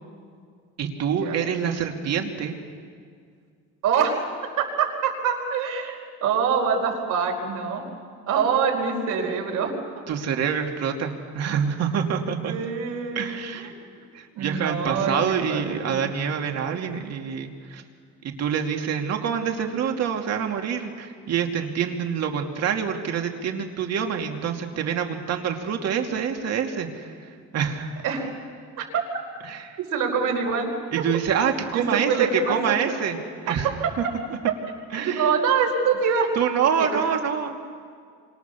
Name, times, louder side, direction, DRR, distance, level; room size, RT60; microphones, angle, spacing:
voice 1, 0.8-2.5 10.1-12.5 13.1-13.7 14.1-17.8 18.2-27.9 29.5-29.8 30.9-33.2 33.4-33.7 34.0-34.1 34.9-35.3 36.4-37.6, right 7 dB, 50° right, 4 dB, 2.7 m, -26 dB
voice 2, 3.8-4.2 4.6-7.8 8.3-9.7 12.4-14.1 14.3-16.0 28.0-28.3 28.8-29.0 29.9-30.7 31.7-33.1 33.5-33.6 35.0-36.3 36.8-37.0, right 6 dB, 70° right, 0 dB, 5.1 m, -25 dB
28.5 x 25.5 x 7.1 m, 2.1 s
cardioid pair, 145°, 32 cm